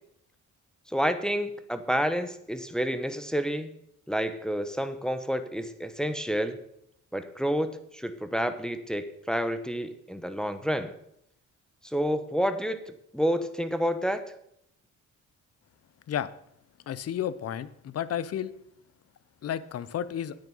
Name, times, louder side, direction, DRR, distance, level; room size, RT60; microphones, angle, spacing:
voice 1, 0.9-3.7 4.1-6.6 7.1-10.9 11.8-12.8 13.1-14.2, equal, ahead, 9 dB, 0.9 m, -29 dB
voice 2, 16.9-18.5 19.4-20.4, left 10 dB, 55° left, 17 dB, 0.7 m, -32 dB
9.1 x 9.0 x 5.5 m, 0.75 s
cardioid pair, 90°, 30 cm